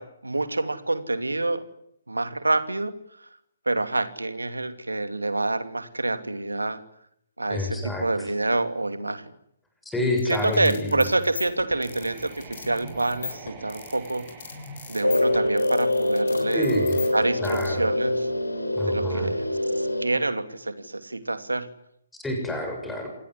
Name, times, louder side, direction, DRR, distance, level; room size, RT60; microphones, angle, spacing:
voice 1, 0.0-1.6 2.1-2.9 3.7-6.8 7.4-9.3 10.3-14.3 14.9-16.7 17.1-18.3 18.8-21.7, right 2 dB, 75° right, 11 dB, 2.7 m, -27 dB
voice 2, 7.5-8.3 9.9-11.0 16.5-17.1 17.4-17.9 18.8-19.3 22.2-23.1, left 1 dB, 5° left, 2 dB, 7.2 m, -28 dB
sound 1, 10.2-17.7, left 6 dB, 45° left, 7.3 m, -39 dB
sound 2, 11.7-16.6, right 5 dB, 25° right, 7.9 m, -46 dB
sound 3, 15.0-20.1, left 1 dB, 80° left, 3.9 m, -25 dB
27.5 x 19.5 x 9.9 m, 0.73 s
figure-of-eight pair, 130°, 0 cm